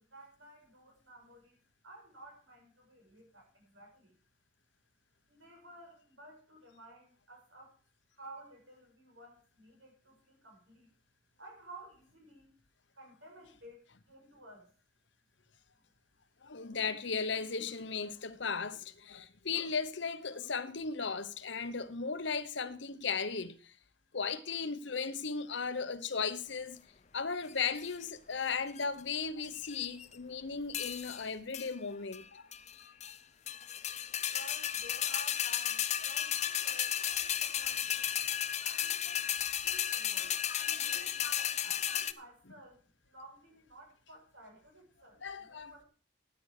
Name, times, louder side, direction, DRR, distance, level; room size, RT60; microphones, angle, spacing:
voice 1, 0.0-1.6 1.8-4.1 5.3-7.8 8.1-10.9 11.4-12.5 13.0-14.7 34.3-38.2 39.6-45.9, right 1 dB, 70° right, 6.7 m, -54 dB
voice 2, 16.4-23.7 24.1-26.8 27.1-32.4 38.6-39.3 40.5-41.5 45.2-45.7, left 5 dB, 65° left, 1.0 m, -37 dB
sound 1, 27.5-28.0 28.5-29.0 29.5-30.1 30.7-31.2 31.5-31.7 32.1-32.2 32.5-33.2 33.5-42.1, left 10 dB, 35° left, 0.5 m, -34 dB
13.0 x 9.8 x 4.9 m
head